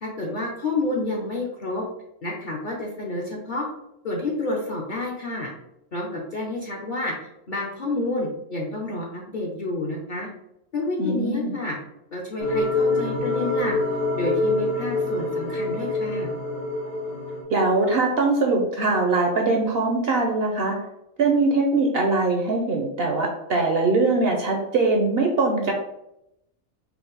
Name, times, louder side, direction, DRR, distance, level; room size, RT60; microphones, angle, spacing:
voice 1, 0.0-1.8 2.2-3.7 4.0-5.5 5.9-10.3 10.7-11.8 12.1-13.8 14.1-16.3, left 2 dB, 50° left, -2 dB, 0.6 m, -29 dB
voice 2, 11.0-11.5 17.5-20.8 21.2-25.7, right 3 dB, 60° right, 2 dB, 0.7 m, -22 dB
sound 1, 12.4-17.4, left 2 dB, 90° left, 1.4 m, -25 dB
4.4 x 2.0 x 3.9 m, 0.82 s
omnidirectional pair, 1.4 m